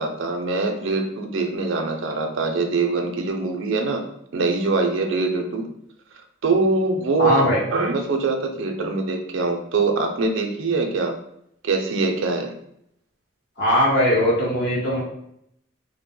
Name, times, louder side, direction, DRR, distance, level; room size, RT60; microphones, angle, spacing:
voice 1, 0.0-4.0 4.3-5.7 6.4-7.4 7.7-11.1 11.6-12.5, right 3 dB, 65° right, 4 dB, 0.4 m, -23 dB
voice 2, 7.2-7.6 13.6-15.0, left 1 dB, 55° left, -4 dB, 1.0 m, -19 dB
2.7 x 2.0 x 3.7 m, 0.75 s
head